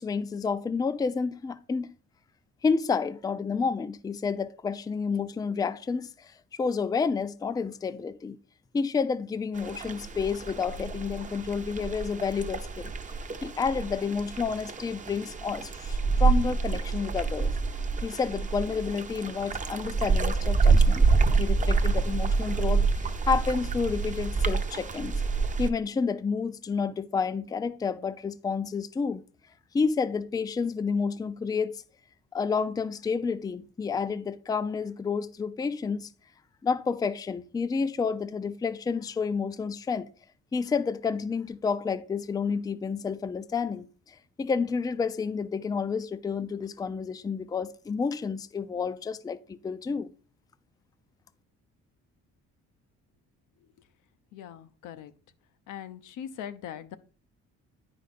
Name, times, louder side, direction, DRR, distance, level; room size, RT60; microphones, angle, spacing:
voice 1, 0.0-1.9 2.6-8.4 8.7-12.9 13.4-17.5 18.0-21.1 21.4-25.2 25.6-29.2 29.7-31.8 32.3-36.1 36.6-40.1 40.5-50.1, left 5 dB, 15° left, 0.3 m, -30 dB
sound 1, 9.6-25.7, right 4 dB, 25° right, 0.6 m, -27 dB
voice 2, 54.3-55.1 55.7-57.0, left 9 dB, 85° left, 0.7 m, -41 dB
9.1 x 5.0 x 4.2 m
cardioid pair, 90°, 30 cm